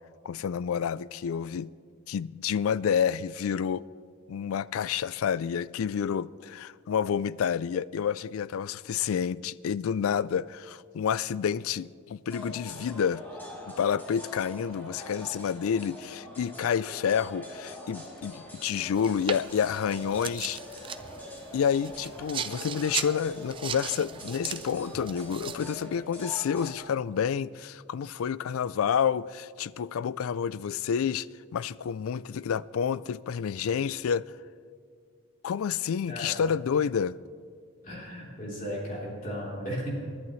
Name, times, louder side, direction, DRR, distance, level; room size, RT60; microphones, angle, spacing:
voice 1, 0.2-1.7 2.1-3.9 4.3-13.2 13.7-20.6 21.5-31.3 31.5-34.3 35.4-37.2, left 7 dB, 80° left, 0.3 m, -29 dB
sound 1, 12.3-26.7, equal, 10° left, 2.9 m, -44 dB
sound 2, 18.9-25.9, right 7 dB, 25° right, 0.4 m, -38 dB
voice 2, 37.8-39.9, equal, 40° left, 3.5 m, -35 dB
29.0 x 11.5 x 3.2 m
head